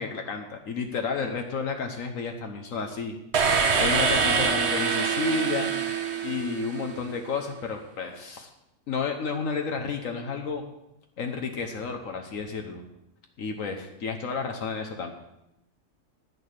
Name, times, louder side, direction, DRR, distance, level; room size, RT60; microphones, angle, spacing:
voice 1, 0.0-3.2 3.7-5.7 6.2-8.5 8.9-10.6 11.2-12.8 13.4-15.1, left 5 dB, 70° left, 4 dB, 1.4 m, -31 dB
sound 1, 3.3-7.2, right 5 dB, 55° right, 1.3 m, -25 dB
10.5 x 8.9 x 6.6 m, 0.85 s
omnidirectional pair, 1.4 m